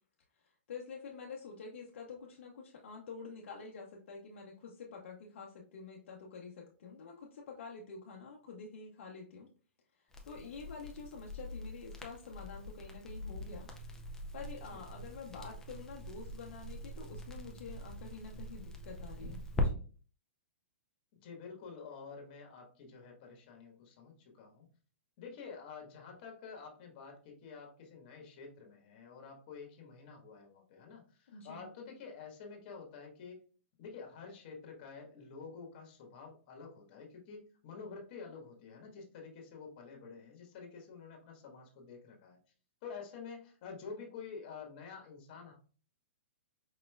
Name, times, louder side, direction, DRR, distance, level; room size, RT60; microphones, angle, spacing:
voice 1, 0.4-9.5 10.0-13.9 14.3-19.8 31.3-31.7, left 5 dB, 65° left, -1 dB, 0.7 m, -48 dB
Crackle, 10.1-19.7, left 1 dB, 5° left, 0.5 m, -42 dB
voice 2, 21.2-24.7 25.2-33.4 33.8-42.4 42.8-45.5, left 5 dB, 40° left, 1 dB, 1.3 m, -49 dB
4.8 x 3.0 x 2.3 m, 0.40 s
hypercardioid pair, 145°, 7 cm